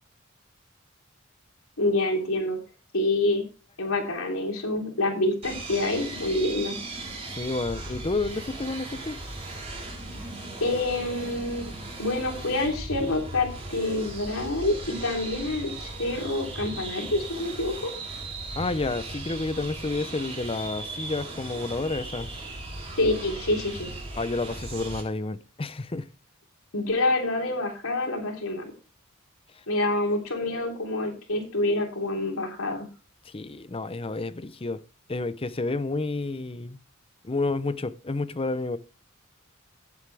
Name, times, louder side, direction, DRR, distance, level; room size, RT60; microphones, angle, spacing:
voice 1, 1.8-2.6 2.9-3.4 3.8-6.8 10.6-11.6 12.0-17.7 23.0-23.9 26.7-28.7 29.7-32.9, left 2 dB, 80° left, 3.5 m, -27 dB
sound 1, 5.4-25.0, right 2 dB, 30° right, 3.7 m, -38 dB
voice 2, 7.3-9.2 18.6-22.3 24.2-26.1 33.3-34.8 35.1-36.8 37.2-38.8, left 3 dB, 25° left, 0.6 m, -30 dB
17.0 x 8.1 x 3.4 m
head